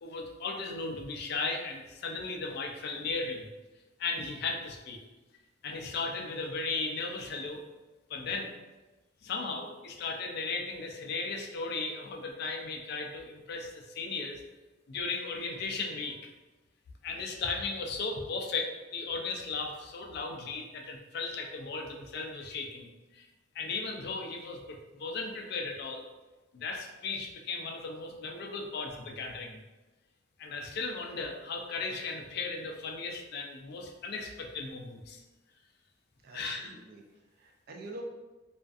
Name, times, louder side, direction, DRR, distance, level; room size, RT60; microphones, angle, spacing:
voice 1, 0.0-3.5 4.0-5.0 5.6-7.6 8.1-8.5 9.2-14.4 14.9-16.2 17.0-23.3 23.5-26.0 26.5-29.6 30.4-35.2 36.3-36.7, left 4 dB, 55° left, 2 dB, 0.3 m, -36 dB
voice 2, 36.2-38.0, right 2 dB, 50° right, 1 dB, 0.4 m, -47 dB
2.4 x 2.3 x 2.4 m, 1.1 s
head